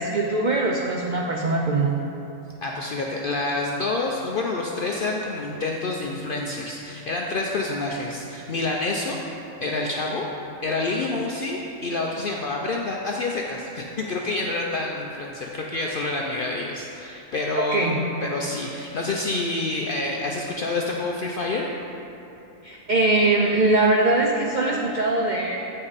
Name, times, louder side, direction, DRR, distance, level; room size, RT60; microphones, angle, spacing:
voice 1, 0.0-2.0 17.6-18.0 22.6-25.6, right 2 dB, 75° right, 0 dB, 0.4 m, -22 dB
voice 2, 2.6-9.2 9.6-10.3 10.6-21.7, left 2 dB, 65° left, -1 dB, 0.5 m, -28 dB
8.7 x 5.5 x 4.0 m, 2.9 s
omnidirectional pair, 1.4 m